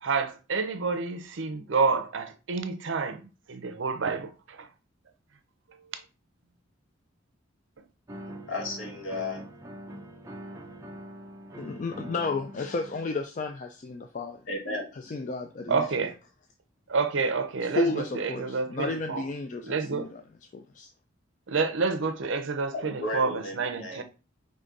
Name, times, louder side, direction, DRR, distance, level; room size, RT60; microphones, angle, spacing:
voice 1, 0.0-4.7 15.7-16.1 16.9-19.2 19.6-20.1 21.5-24.0, right 4 dB, 70° right, 0.6 m, -29 dB
sound 1, 8.1-13.1, right 1 dB, 15° right, 0.7 m, -43 dB
voice 2, 8.5-9.4 14.5-14.8 22.7-24.0, left 2 dB, 75° left, 1.5 m, -34 dB
voice 3, 11.6-14.4 14.9-15.9 17.6-20.2 20.5-20.9, left 3 dB, 40° left, 0.3 m, -32 dB
5.1 x 2.6 x 3.8 m
head